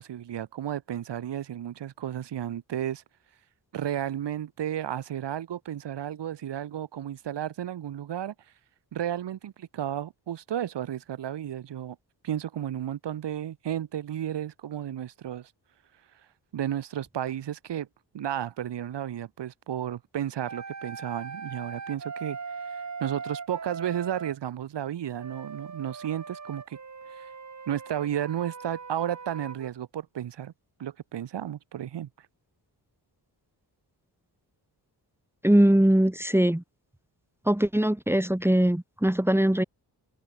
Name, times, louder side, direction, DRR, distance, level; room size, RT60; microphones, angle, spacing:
voice 1, 0.0-3.0 3.7-8.3 8.9-12.0 12.2-15.5 16.5-17.9 18.1-22.4 23.0-26.8 27.2-27.3 27.7-30.5 30.8-32.1, right 10 dB, 85° right, 1.6 m, -33 dB
sound 1, 20.4-24.4 25.1-29.7, right 5 dB, 40° right, 4.0 m, -40 dB
voice 2, 35.4-36.6 37.5-39.6, right 1 dB, 5° right, 2.4 m, -21 dB
wide cardioid pair, 95°, 41 cm